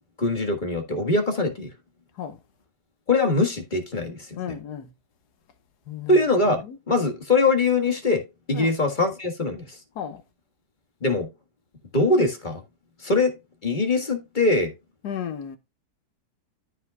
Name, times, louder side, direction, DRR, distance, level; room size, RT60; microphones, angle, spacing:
voice 1, 0.2-1.7 3.1-4.6 6.1-8.2 8.5-9.6 11.0-11.3 11.9-12.6 13.0-13.3 13.6-14.7, left 3 dB, 30° left, 1.6 m, -22 dB
voice 2, 4.4-4.9 5.9-6.2 6.6-6.8 8.5-8.7 9.9-10.2 15.0-15.6, left 9 dB, 70° left, 1.7 m, -33 dB
13.0 x 5.5 x 2.3 m
omnidirectional pair, 1.8 m